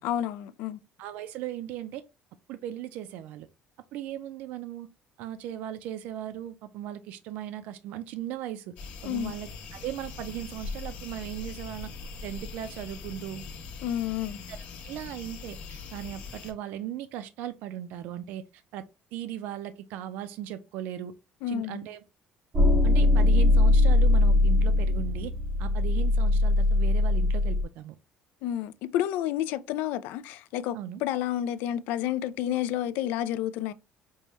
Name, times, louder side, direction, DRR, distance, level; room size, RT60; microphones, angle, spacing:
voice 1, 0.0-0.8 9.0-9.3 13.8-14.4 21.4-21.8 28.4-33.7, left 11 dB, 80° left, 0.3 m, -30 dB
voice 2, 1.0-2.0 2.5-3.5 3.9-4.9 5.2-8.7 9.0-11.9 12.2-13.4 14.5-14.6 14.8-18.8 19.1-21.1 21.5-22.0 22.8-25.3 25.6-28.0 30.7-31.0, right 11 dB, 75° right, 0.4 m, -37 dB
sound 1, 8.8-16.5, left 4 dB, 60° left, 0.9 m, -41 dB
sound 2, 22.5-27.6, left 2 dB, 30° right, 0.7 m, -21 dB
5.4 x 2.2 x 3.0 m
cardioid pair, 155°, 3 cm